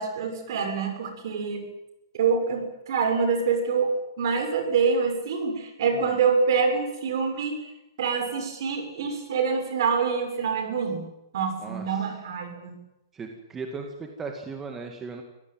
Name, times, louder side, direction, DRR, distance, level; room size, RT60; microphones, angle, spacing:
voice 1, 0.0-1.6 2.1-7.5 8.0-11.1 11.3-12.7, right 5 dB, 55° right, 6 dB, 6.9 m, -26 dB
voice 2, 11.6-12.0 13.1-15.2, right 4 dB, 10° right, 3 dB, 2.1 m, -37 dB
25.5 x 17.0 x 9.3 m, 0.90 s
hypercardioid pair, 165°, 3 cm